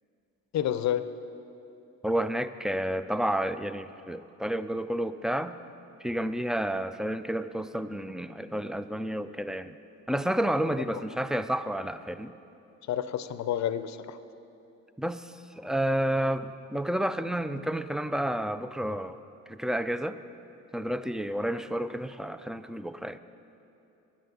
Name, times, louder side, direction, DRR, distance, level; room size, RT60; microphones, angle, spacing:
voice 1, 0.5-1.1 10.9-11.0 12.9-14.2, left 10 dB, 65° left, 13 dB, 0.6 m, -29 dB
voice 2, 2.0-5.5 6.0-9.7 10.1-12.3 15.0-19.2 19.5-20.2 20.7-23.2, right 1 dB, ahead, 12 dB, 0.3 m, -30 dB
9.6 x 8.8 x 7.0 m, 2.8 s
cardioid pair, 90°, 30 cm